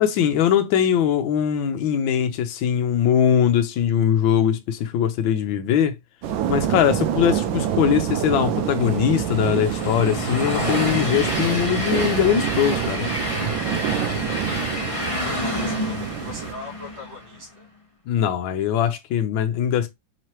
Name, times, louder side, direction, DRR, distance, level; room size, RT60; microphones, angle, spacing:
voice 1, 0.0-6.0 6.5-13.1 18.1-19.9, left 9 dB, 85° left, 1.4 m, -21 dB
sound 1, 6.2-16.5, right 10 dB, 85° right, 1.4 m, -27 dB
Train, 7.9-17.4, left 1 dB, 25° left, 0.8 m, -29 dB
voice 2, 15.4-17.7, left 2 dB, 70° right, 2.6 m, -41 dB
4.8 x 3.0 x 3.0 m
omnidirectional pair, 2.1 m